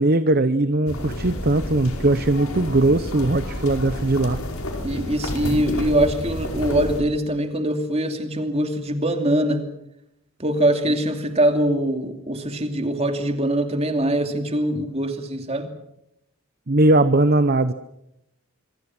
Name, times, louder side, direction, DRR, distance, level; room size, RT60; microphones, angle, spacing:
voice 1, 0.0-4.4 16.7-17.7, right 2 dB, 45° right, 12 dB, 0.8 m, -19 dB
sound 1, 0.9-7.0, left 1 dB, 75° left, 5.0 m, -30 dB
voice 2, 4.8-9.7 10.4-15.7, right 1 dB, 30° right, 6 dB, 2.8 m, -23 dB
26.5 x 25.0 x 6.1 m, 0.81 s
head